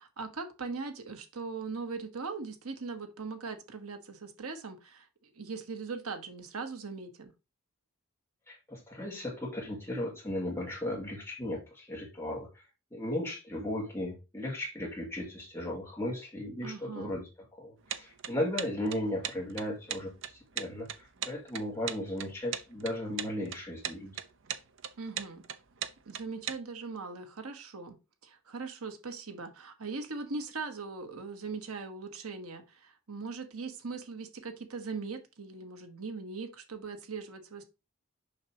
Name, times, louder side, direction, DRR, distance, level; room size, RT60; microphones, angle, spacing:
voice 1, 0.0-5.1 5.3-7.3 16.6-17.1 25.0-25.4 26.1-28.0 28.2-37.6, right 4 dB, 90° right, 1.2 m, -40 dB
voice 2, 8.5-12.6 12.9-17.3 17.6-24.2, left 1 dB, 10° left, 2.3 m, -36 dB
sound 1, 17.9-26.6, right 9 dB, 60° right, 0.6 m, -37 dB
6.5 x 5.9 x 2.9 m
head